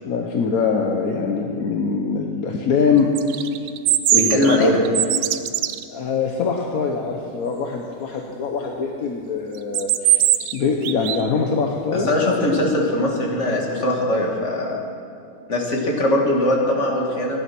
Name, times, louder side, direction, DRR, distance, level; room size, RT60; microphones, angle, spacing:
voice 1, 0.0-3.4 4.1-4.8 5.9-10.2 10.5-12.4, left 5 dB, 55° left, 1 dB, 1.1 m, -23 dB
sound 1, 3.2-5.8 9.6-10.6 10.8-11.3, right 12 dB, 80° right, 0.9 m, -20 dB
voice 2, 4.1-4.8 11.9-14.8 15.5-17.4, left 1 dB, 35° left, -1 dB, 2.2 m, -21 dB
16.0 x 10.5 x 6.0 m, 2.3 s
omnidirectional pair, 2.4 m